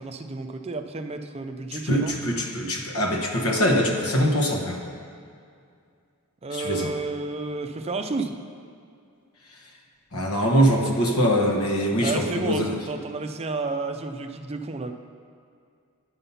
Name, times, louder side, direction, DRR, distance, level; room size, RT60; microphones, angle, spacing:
voice 1, 0.0-2.1 6.4-8.3 12.0-14.9, right 3 dB, 30° right, 6 dB, 0.5 m, -31 dB
voice 2, 1.7-4.8 6.5-6.9 10.1-12.7, equal, 85° left, 1 dB, 1.2 m, -23 dB
9.9 x 5.5 x 5.6 m, 2.3 s
head